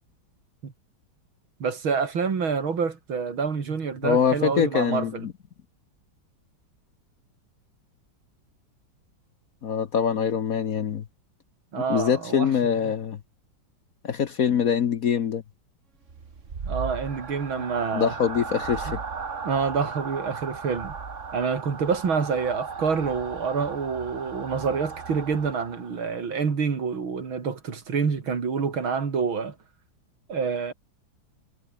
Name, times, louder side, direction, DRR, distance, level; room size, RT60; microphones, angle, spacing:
voice 1, 1.6-5.3 11.7-12.8 16.7-18.1 19.4-21.0 21.3-29.6 30.3-30.7, right 5 dB, 75° right, 3.6 m, -27 dB
voice 2, 4.0-5.3 9.6-11.0 11.9-13.2 14.0-15.4 17.9-19.0, left 7 dB, 55° left, 1.2 m, -24 dB
sound 1, 16.0-26.0, right 5 dB, 40° right, 2.0 m, -36 dB
omnidirectional pair, 2.2 m